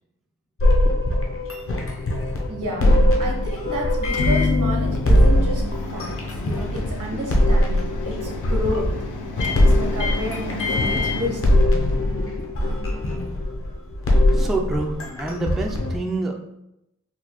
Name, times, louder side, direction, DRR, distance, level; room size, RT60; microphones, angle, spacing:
sound 1, 0.6-16.0, left 1 dB, 45° left, 0.7 m, -21 dB
voice 1, 2.5-5.6 5.9-6.1 6.4-8.9 9.6-11.7, equal, 80° right, -1 dB, 1.0 m, -31 dB
Microwave oven, 4.0-12.1, left 3 dB, 80° left, 0.5 m, -28 dB
voice 2, 14.3-16.4, right 2 dB, ahead, 1 dB, 0.3 m, -27 dB
3.9 x 2.3 x 3.0 m, 0.84 s
wide cardioid pair, 100°, 31 cm